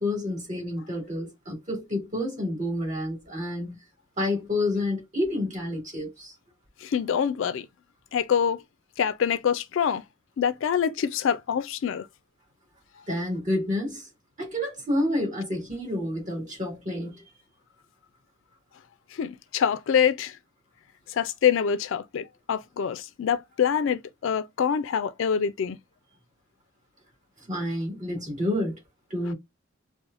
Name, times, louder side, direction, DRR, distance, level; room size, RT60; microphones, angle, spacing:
voice 1, 0.0-3.8 4.2-6.3 13.1-14.1 14.4-17.2 27.4-28.8 29.1-29.3, left 1 dB, 35° right, 2.1 m, -29 dB
voice 2, 6.8-7.7 8.1-8.6 9.0-10.0 10.4-12.1 19.1-20.4 21.1-25.8, left 7 dB, 65° left, 0.3 m, -25 dB
4.6 x 2.1 x 2.5 m
head